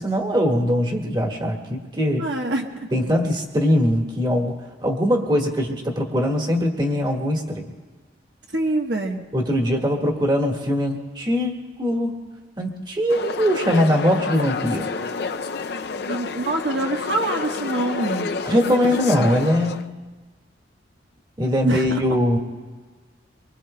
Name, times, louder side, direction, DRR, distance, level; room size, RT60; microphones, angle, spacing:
voice 1, 0.0-2.3 2.9-7.7 9.3-12.2 12.6-14.9 18.4-20.0 21.4-22.4, equal, 25° right, 1 dB, 1.7 m, -21 dB
voice 2, 2.2-2.7 8.5-9.2 16.1-18.3 21.6-22.0, right 2 dB, 70° right, 1 dB, 1.2 m, -25 dB
sound 1, 13.1-19.8, left 4 dB, 60° left, 0.5 m, -29 dB
25.0 x 24.5 x 2.2 m, 1.4 s
head